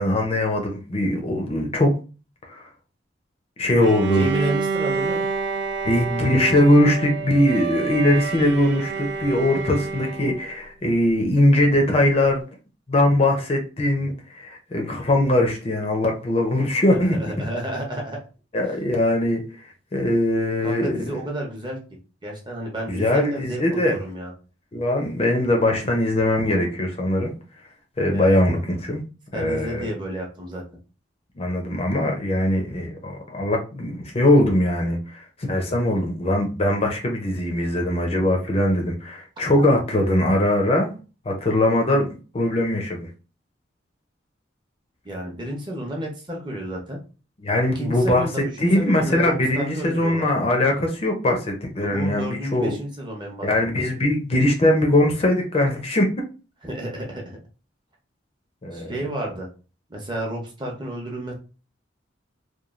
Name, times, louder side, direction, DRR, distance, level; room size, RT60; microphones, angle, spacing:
voice 1, 0.0-1.9 2.5-2.7 3.6-4.3 5.8-12.4 12.9-17.2 18.5-19.4 19.9-21.2 22.9-24.0 24.7-27.3 28.0-29.0 29.3-29.9 31.4-40.9 41.3-42.1 42.3-43.1 47.4-52.7 53.4-56.1 58.6-58.9, left 1 dB, 30° left, 0.5 m, -21 dB
Bowed string instrument, 3.8-10.5, right 5 dB, 65° right, 0.4 m, -28 dB
voice 2, 4.1-5.2 12.2-12.3 17.0-18.2 20.6-21.8 22.2-24.3 28.1-28.3 29.3-30.6 45.0-47.0 47.7-50.3 51.8-53.5 56.6-57.4 58.7-59.5 59.9-61.3, right 1 dB, 25° right, 0.7 m, -31 dB
3.0 x 2.2 x 2.4 m
head